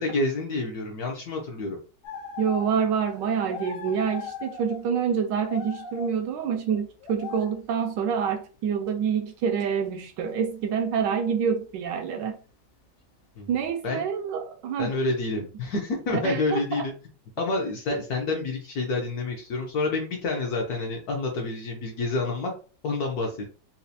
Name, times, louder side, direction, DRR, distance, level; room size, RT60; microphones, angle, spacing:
voice 1, 0.0-1.8 13.4-13.5 13.8-14.0 14.8-16.9 17.4-22.5 22.8-23.4, left 3 dB, 65° left, 1.0 m, -28 dB
sound 1, 2.0-2.8 3.1-3.2 3.5-4.8 5.4-6.1 6.7-7.6 8.9-9.0 9.6-9.7 10.1-10.2, left 7 dB, 85° left, 1.6 m, -38 dB
voice 2, 2.4-12.4 13.5-14.9 16.1-16.8, right 7 dB, 75° right, 1.1 m, -27 dB
4.2 x 2.3 x 2.6 m
omnidirectional pair, 2.2 m